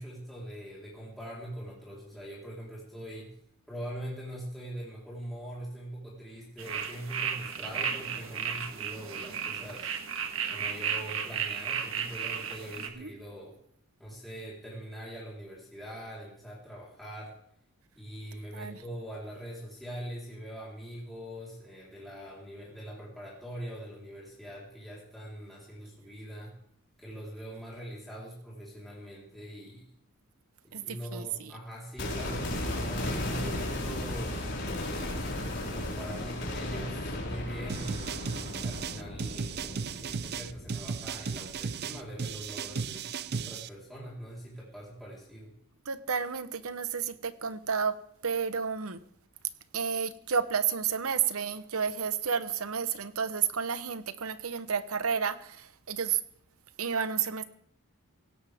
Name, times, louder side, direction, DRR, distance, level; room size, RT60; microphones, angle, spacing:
voice 1, 0.0-3.3 3.7-9.9 10.5-13.6 14.0-17.3 17.9-26.5 27.0-29.9 30.6-35.1 35.7-45.5, equal, ahead, -7 dB, 4.0 m, -42 dB
sound 1, 6.6-12.9, right 7 dB, 65° right, 1.5 m, -34 dB
voice 2, 30.7-31.5 45.9-48.0 48.2-49.0 49.7-56.2 56.8-57.4, right 6 dB, 85° right, 13 dB, 1.0 m, -31 dB
sound 2, 32.0-42.0 42.3-42.4, left 1 dB, 55° left, 4.7 m, -35 dB
sound 3, 37.7-43.7, right 5 dB, 50° right, 0.5 m, -35 dB
17.0 x 17.0 x 3.6 m, 0.69 s
head